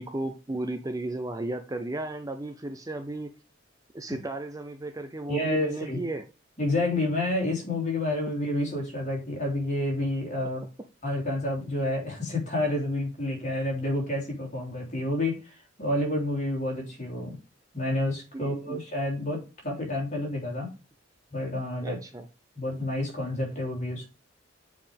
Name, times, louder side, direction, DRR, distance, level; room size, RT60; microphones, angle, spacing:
voice 1, 0.0-3.3 3.9-6.3 18.3-18.8 21.8-22.3, right 2 dB, 20° right, 7 dB, 0.6 m, -34 dB
voice 2, 5.3-6.0 6.6-10.6 11.0-17.4 17.7-20.7 21.3-22.0 22.5-24.1, left 1 dB, 40° left, -1 dB, 3.2 m, -29 dB
7.5 x 4.7 x 3.5 m, 0.31 s
head